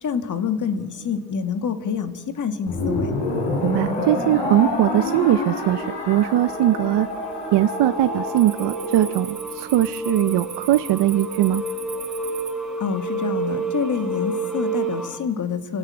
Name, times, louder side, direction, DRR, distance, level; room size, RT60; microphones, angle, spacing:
voice 1, 0.0-3.1 12.8-15.8, left 6 dB, 45° left, 9 dB, 1.8 m, -27 dB
sound 1, 2.7-9.2, left 2 dB, 75° left, 5.4 m, -27 dB
Cricket, 3.5-4.0 4.4-4.9 5.5-5.6 6.2-6.8 7.0-7.3 7.7-12.5, right 6 dB, 35° right, 2.9 m, -39 dB
voice 2, 3.6-7.1 7.5-11.6, right 13 dB, 75° right, 14 dB, 0.6 m, -20 dB
sound 2, 4.8-4.9 5.3-15.2, right 2 dB, ahead, 3.6 m, -30 dB
25.0 x 16.0 x 8.7 m, 1.3 s
cardioid pair, 150°, 42 cm